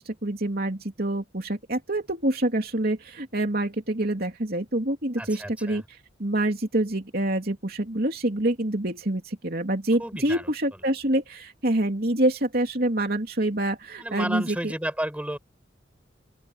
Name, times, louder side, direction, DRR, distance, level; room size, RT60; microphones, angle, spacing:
voice 1, 0.0-14.7, right 1 dB, 55° right, 3.2 m, -26 dB
voice 2, 5.2-5.8 10.0-10.4 14.0-15.4, right 1 dB, 5° right, 7.4 m, -32 dB
open air
head